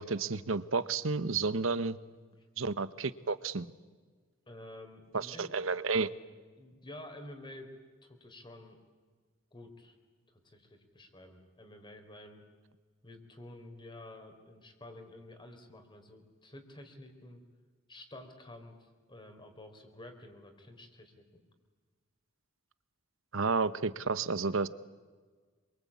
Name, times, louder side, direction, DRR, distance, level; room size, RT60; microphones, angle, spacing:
voice 1, 0.0-2.0 2.6-3.7 5.1-6.1 23.3-24.7, right 4 dB, 70° right, 15 dB, 1.0 m, -31 dB
voice 2, 4.5-5.5 6.6-7.7 8.0-8.8 9.5-10.0 10.4-12.5 13.0-17.4 17.9-21.4, left 1 dB, 25° left, 6 dB, 3.7 m, -50 dB
27.0 x 23.5 x 8.5 m, 1.5 s
head